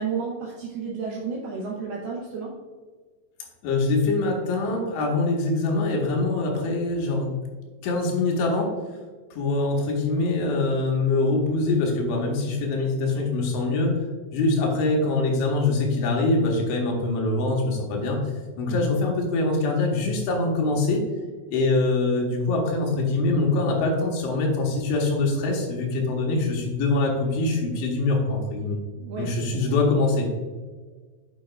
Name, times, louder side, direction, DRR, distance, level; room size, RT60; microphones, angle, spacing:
voice 1, 0.0-2.5 18.7-18.8 29.0-29.6, right 5 dB, 75° right, -2 dB, 2.3 m, -32 dB
voice 2, 3.6-7.3 7.8-8.7 9.3-14.0 14.3-18.2 18.6-21.0 21.5-28.8 29.2-30.3, left 2 dB, 75° left, -1 dB, 3.5 m, -24 dB
9.4 x 6.3 x 2.4 m, 1.4 s
omnidirectional pair, 5.5 m